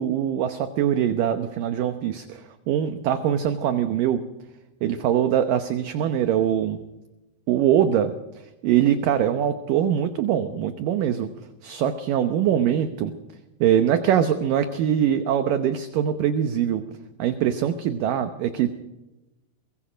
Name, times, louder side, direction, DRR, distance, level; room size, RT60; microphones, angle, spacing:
voice 1, 0.0-2.4 2.7-4.2 4.8-6.8 7.5-8.1 8.6-11.3 11.6-13.1 13.6-16.8 17.2-18.7, right 10 dB, 70° right, 8 dB, 2.2 m, -22 dB
23.5 x 21.5 x 5.1 m, 1.0 s
omnidirectional pair, 4.8 m